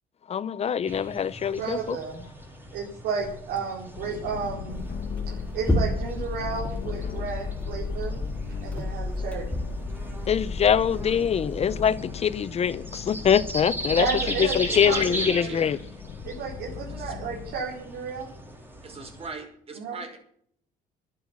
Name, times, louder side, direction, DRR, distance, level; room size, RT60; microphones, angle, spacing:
voice 1, 0.3-2.0 10.3-14.1 14.4-15.8, left 8 dB, 40° left, 0.7 m, -24 dB
sound 1, 0.8-19.3, right 1 dB, 10° right, 4.2 m, -39 dB
voice 2, 1.6-2.2 2.7-4.8 5.3-8.2 8.6-9.5 14.0-15.0 15.3-15.6 16.2-18.3 19.7-20.0, right 5 dB, 85° right, 4.6 m, -32 dB
sound 2, 4.0-17.6, left 8 dB, 55° left, 1.2 m, -38 dB
sound 3, 4.7-11.9, left 1 dB, 10° left, 2.4 m, -32 dB
voice 3, 14.4-15.8 16.9-17.1 18.8-20.2, right 4 dB, 35° right, 5.3 m, -39 dB
12.5 x 10.5 x 7.3 m
cardioid pair, 110°, 17 cm